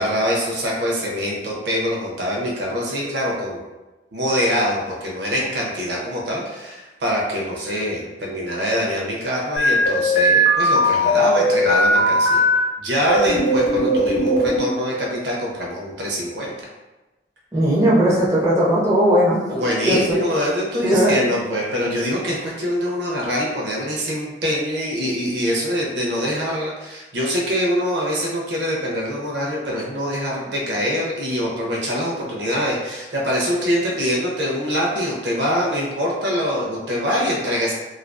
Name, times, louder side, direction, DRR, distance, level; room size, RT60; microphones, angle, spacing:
voice 1, 0.0-3.6 4.1-12.4 12.8-16.5 19.5-37.7, equal, 65° right, -2 dB, 0.5 m, -24 dB
sound 1, 9.6-12.6 13.1-14.7, equal, 80° left, 0.7 m, -18 dB
voice 2, 17.5-20.0 20.8-21.2, equal, 15° right, -8 dB, 0.6 m, -18 dB
2.4 x 2.3 x 2.2 m, 1.1 s
head